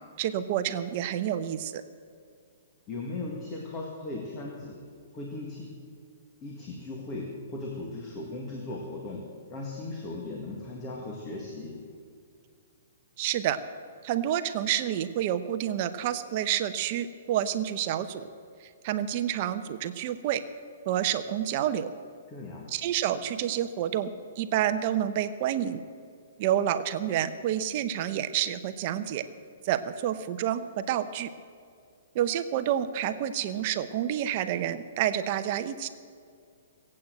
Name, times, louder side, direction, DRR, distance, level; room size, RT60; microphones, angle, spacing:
voice 1, 0.2-1.8 13.2-13.6 14.0-18.3 18.6-20.4 20.9-21.9 22.7-25.8 26.4-29.2 29.6-31.3 32.1-35.9, right 11 dB, 35° right, 10 dB, 0.8 m, -29 dB
voice 2, 2.9-4.8 5.1-5.8 6.4-11.9 22.3-22.7, left 2 dB, 20° left, -1 dB, 1.8 m, -38 dB
18.0 x 8.6 x 7.8 m, 2.2 s
hypercardioid pair, 160°, 0 cm